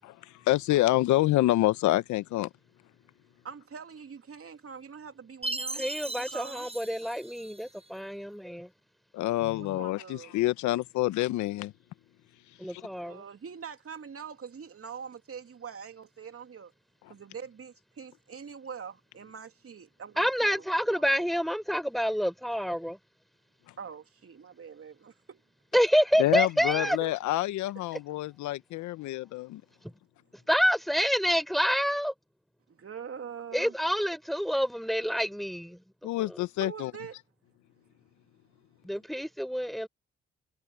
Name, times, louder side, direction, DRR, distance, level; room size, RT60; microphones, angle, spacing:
voice 1, 0.5-2.5 9.1-11.7 12.7-12.8 26.2-29.6 36.0-36.9, left 16 dB, 75° left, 1.4 m, -27 dB
voice 2, 3.4-5.9 6.3-6.7 9.5-10.4 13.0-16.7 17.1-20.6 20.9-21.3 23.8-25.4 26.7-27.1 32.7-33.7 36.6-37.2, right 7 dB, 50° right, 3.0 m, -43 dB
Chime, 5.4-7.9, right 2 dB, 20° right, 6.5 m, -37 dB
voice 3, 5.7-8.7 12.6-13.2 20.2-23.0 25.7-27.0 29.8-29.9 30.5-32.1 33.5-35.8 36.2-36.4 38.8-39.9, equal, ahead, 4.3 m, -28 dB
hypercardioid pair, 40°, 29 cm